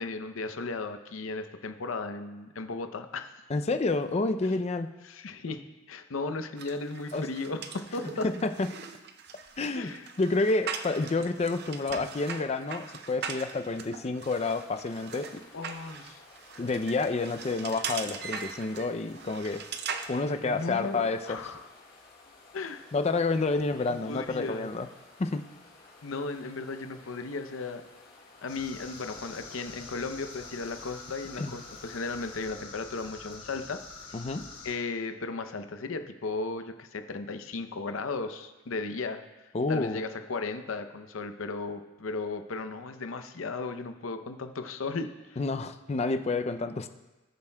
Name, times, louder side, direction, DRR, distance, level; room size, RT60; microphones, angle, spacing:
voice 1, 0.0-3.3 5.0-8.3 9.8-10.1 15.5-16.2 20.4-21.6 22.5-22.9 23.9-24.7 26.0-27.8 28.4-33.8 34.1-34.2 34.6-45.4, left 3 dB, 80° left, 9 dB, 0.6 m, -36 dB
voice 2, 3.5-4.9 7.1-7.3 8.2-8.7 9.6-9.9 10.2-15.4 16.6-19.6 20.1-21.5 22.9-24.9 25.2-25.4 31.4-31.5 34.1-34.4 39.5-40.0 45.4-46.9, left 3 dB, 30° left, 9 dB, 0.4 m, -29 dB
sound 1, 6.6-20.1, right 6 dB, 55° right, 0.5 m, -40 dB
sound 2, 14.2-32.4, left 3 dB, 50° left, 1.7 m, -55 dB
sound 3, 28.5-34.7, left 3 dB, 65° left, 2.7 m, -46 dB
18.0 x 7.1 x 2.2 m, 1.1 s
head